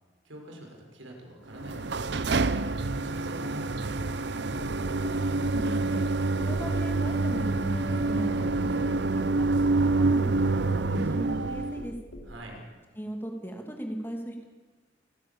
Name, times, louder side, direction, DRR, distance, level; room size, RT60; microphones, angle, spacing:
voice 1, 0.2-4.2 12.2-12.6, right 1 dB, 80° right, 1 dB, 5.8 m, -45 dB
sound 1, 1.5-11.9, right 3 dB, 60° right, 0.7 m, -27 dB
sound 2, 4.6-12.2, equal, 65° left, 4.1 m, -41 dB
voice 2, 5.5-6.0 6.4-9.5 9.9-10.3 10.6-12.0 13.0-14.4, equal, 10° left, 3 dB, 2.6 m, -37 dB
29.5 x 15.5 x 7.2 m, 1.4 s
head